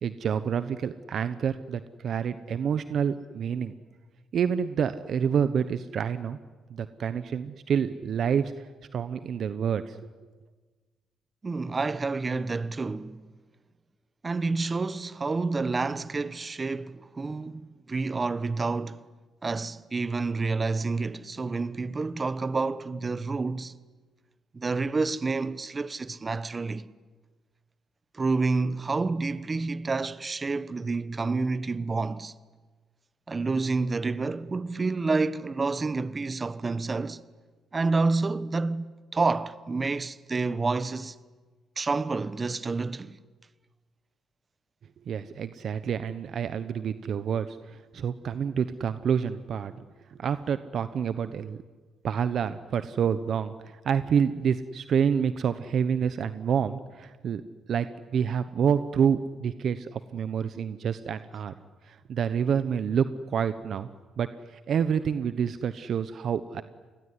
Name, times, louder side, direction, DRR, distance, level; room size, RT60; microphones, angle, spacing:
voice 1, 0.0-3.7 4.3-6.4 6.7-8.5 8.9-10.0 45.1-51.6 52.0-57.4 57.7-61.5 61.9-63.9 64.2-66.6, right 7 dB, 60° right, 1.0 m, -28 dB
voice 2, 11.4-13.2 14.2-19.0 19.4-23.7 24.5-26.9 28.1-32.3 33.3-37.2 37.7-38.9 39.1-41.2 41.8-43.1, right 3 dB, 30° right, 1.2 m, -29 dB
28.0 x 21.0 x 9.8 m
cardioid pair, 90°, 0 cm